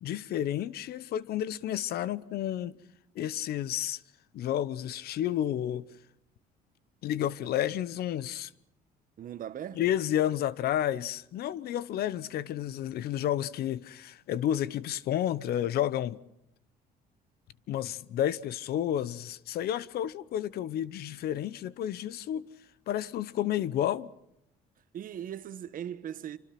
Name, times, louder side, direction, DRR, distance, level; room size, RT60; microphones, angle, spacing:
voice 1, 0.0-2.8 3.1-4.0 4.3-5.9 7.0-8.5 9.8-16.2 17.7-22.5 22.9-24.1, left 11 dB, 70° left, 0.9 m, -31 dB
voice 2, 9.2-9.9 24.9-26.4, right 10 dB, 55° right, 1.4 m, -39 dB
27.5 x 25.0 x 6.0 m
cardioid pair, 110°, 17 cm